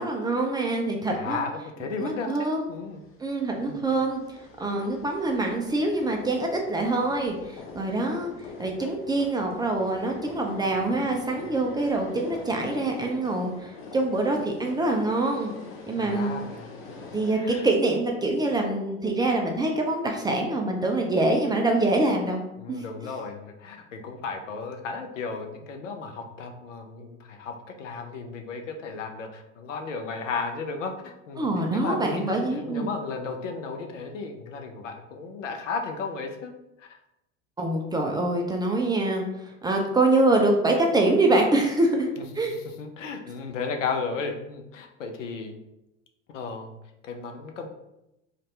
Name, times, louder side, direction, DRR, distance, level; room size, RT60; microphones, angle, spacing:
voice 1, 0.0-1.4 2.0-2.7 3.2-4.2 4.6-8.3 8.6-15.5 15.9-16.3 17.1-22.4 22.7-22.8 31.4-32.9 37.6-39.2 39.6-42.1 42.4-42.5, right 2 dB, 10° right, 1 dB, 0.3 m, -25 dB
voice 2, 1.1-3.0 3.5-4.0 16.0-17.7 22.6-36.5 36.8-37.0 42.2-45.6 46.3-46.8 47.0-47.7, left 4 dB, 85° left, 5 dB, 0.5 m, -35 dB
sound 1, 3.0-17.4, left 3 dB, 35° left, 0.7 m, -44 dB
2.6 x 2.5 x 3.1 m, 0.89 s
hypercardioid pair, 75°, 36 cm